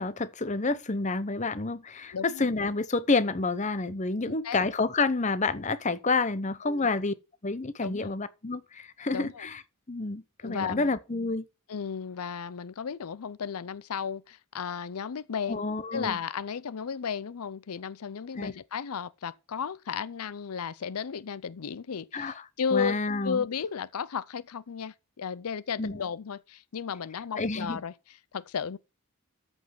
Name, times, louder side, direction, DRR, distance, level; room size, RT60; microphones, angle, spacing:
voice 1, 0.0-7.1 7.4-9.6 9.9-11.4 15.5-16.2 18.3-18.5 22.1-22.4 22.7-23.4 25.8-26.0 27.4-27.8, left 3 dB, 35° left, 0.8 m, -29 dB
voice 2, 2.1-2.5 4.2-4.6 6.6-6.9 7.8-8.2 9.1-9.5 10.4-10.9 11.7-15.6 15.9-28.8, left 6 dB, 85° left, 0.5 m, -34 dB
13.5 x 5.4 x 5.8 m
head